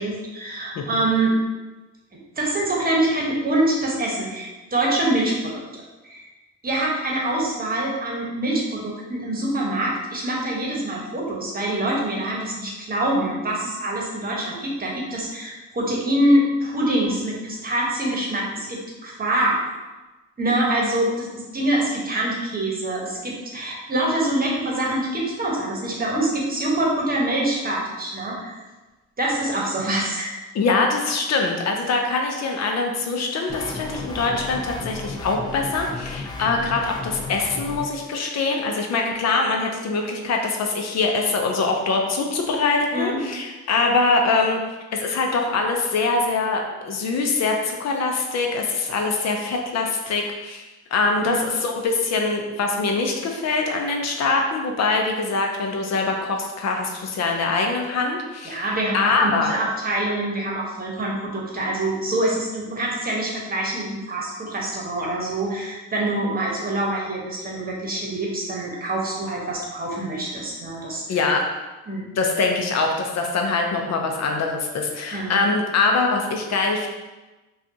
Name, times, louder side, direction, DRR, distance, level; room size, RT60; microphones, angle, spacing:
voice 1, 0.0-1.3 2.4-5.6 6.0-6.2 6.6-19.6 20.4-21.3 21.5-28.6 29.2-30.3 42.9-43.2 51.2-51.4 58.4-71.0 71.9-72.1 75.1-75.3, right 1 dB, 30° right, -3 dB, 1.1 m, -25 dB
voice 2, 30.5-44.6 44.9-50.6 50.9-58.7 58.9-59.5 71.1-71.4 72.2-76.9, left 3 dB, 60° left, 2 dB, 0.6 m, -23 dB
sound 1, 33.5-37.9, left 3 dB, 15° left, 0.4 m, -33 dB
4.9 x 2.4 x 2.7 m, 1.1 s
cardioid pair, 90°, 30 cm